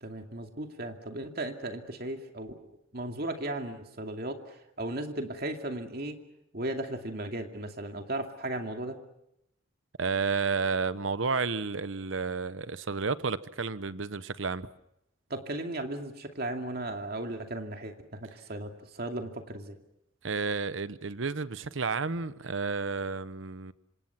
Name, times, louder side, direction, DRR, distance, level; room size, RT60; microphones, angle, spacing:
voice 1, 0.0-2.6 2.9-6.2 6.5-9.0 15.3-19.8, right 1 dB, 50° right, 2.5 m, -36 dB
voice 2, 10.0-14.7 20.2-23.7, right 4 dB, 75° right, 0.9 m, -31 dB
26.5 x 26.5 x 5.9 m
head